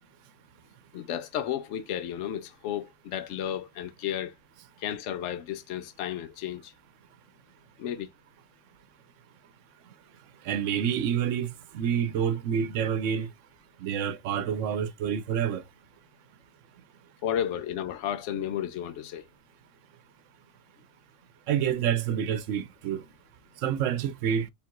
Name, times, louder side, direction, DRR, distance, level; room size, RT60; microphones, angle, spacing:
voice 1, 0.9-4.3 4.8-6.7 7.8-8.1 17.2-19.2, left 10 dB, 70° left, 0.9 m, -33 dB
voice 2, 10.4-13.3 13.8-15.6 21.5-23.0 23.6-24.5, right 8 dB, 75° right, 0.9 m, -28 dB
4.5 x 3.5 x 2.5 m
omnidirectional pair, 1.3 m